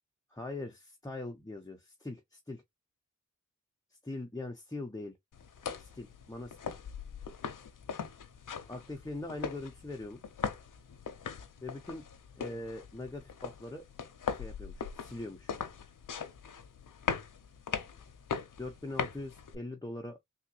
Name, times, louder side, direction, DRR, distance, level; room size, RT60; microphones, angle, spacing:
voice 1, 0.3-2.6 3.9-5.2 5.8-6.7 8.7-10.2 11.6-12.0 12.4-13.8 14.3-15.5 18.6-20.2, left 2 dB, 10° left, 0.7 m, -42 dB
sound 1, 5.3-19.5, left 6 dB, 90° left, 0.7 m, -40 dB
3.6 x 2.8 x 2.7 m
wide cardioid pair, 90°, 31 cm